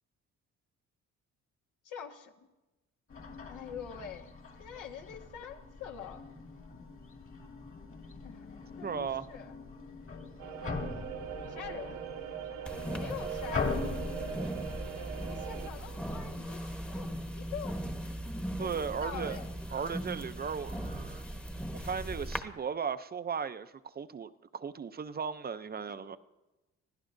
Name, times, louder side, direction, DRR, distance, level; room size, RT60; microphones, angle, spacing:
voice 1, 1.8-2.5 3.5-4.3 4.6-6.2 8.2-8.5 8.8-9.6 11.5-12.0 12.7-13.9 15.1-17.7 18.6-19.5 25.8-26.2, left 8 dB, 80° left, 2 dB, 1.6 m, -45 dB
sound 1, 3.1-16.7, left 4 dB, 45° left, 2.2 m, -42 dB
voice 2, 8.8-9.3 18.6-19.4 19.7-21.2 21.7-26.2, right 6 dB, 30° right, 12 dB, 0.5 m, -36 dB
sound 2, 10.4-15.7, right 8 dB, 85° right, 1.2 m, -41 dB
sound 3, 12.7-22.4, right 1 dB, 5° left, 1.0 m, -39 dB
24.0 x 16.0 x 2.6 m, 1.1 s
cardioid pair, 90°, 30 cm